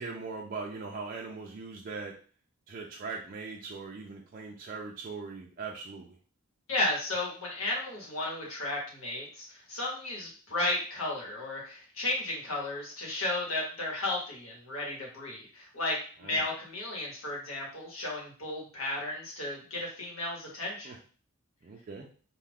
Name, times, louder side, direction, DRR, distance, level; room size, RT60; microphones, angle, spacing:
voice 1, 0.0-2.1 2.7-6.1 16.2-16.4 20.8-21.0 21.6-22.1, right 4 dB, 40° right, -1 dB, 0.3 m, -40 dB
voice 2, 6.7-20.9, left 2 dB, 70° left, -3 dB, 1.2 m, -34 dB
2.4 x 2.3 x 3.4 m, 0.41 s
head